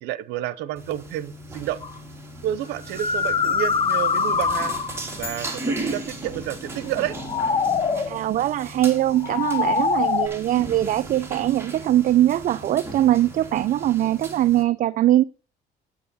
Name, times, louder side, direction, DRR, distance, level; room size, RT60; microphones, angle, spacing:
voice 1, 0.0-1.8 2.4-4.7 5.2-7.2, right 12 dB, 90° right, 0.8 m, -30 dB
sound 1, 0.8-14.6, right 2 dB, 15° right, 3.3 m, -36 dB
sound 2, 1.8-2.0 2.8-5.1 7.0-8.2 9.1-10.3, left 5 dB, 30° left, 1.0 m, -23 dB
sound 3, 5.2-7.0, left 4 dB, 65° left, 3.9 m, -41 dB
voice 2, 7.9-15.2, right 13 dB, 55° right, 0.5 m, -21 dB
9.5 x 8.7 x 4.1 m
cardioid pair, 110°, 17 cm